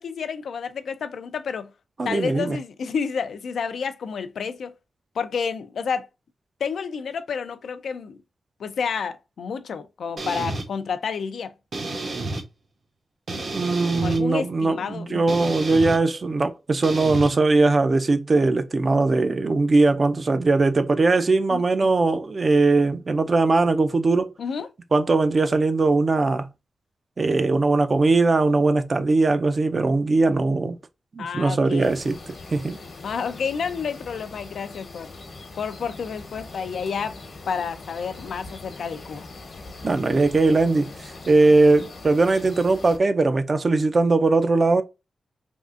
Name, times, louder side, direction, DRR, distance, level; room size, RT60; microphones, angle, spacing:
voice 1, 0.0-1.7 2.0-4.7 5.2-6.1 6.6-8.2 8.6-11.5 14.0-15.2 21.5-21.9 24.4-24.7 31.2-32.0 33.0-35.1 35.6-37.2 37.5-39.3, left 6 dB, 85° left, 0.4 m, -30 dB
voice 2, 2.0-2.6 13.5-24.3 24.9-26.5 27.2-30.8 31.1-32.2 32.5-32.8 39.8-44.8, right 3 dB, 45° right, 0.4 m, -20 dB
sound 1, 10.2-10.7 11.7-12.4 13.3-14.2 15.3-16.0 16.8-17.3, right 2 dB, 60° right, 0.9 m, -30 dB
sound 2, 31.8-43.0, left 3 dB, 65° left, 1.0 m, -42 dB
3.5 x 2.5 x 2.4 m
wide cardioid pair, 90°, 0 cm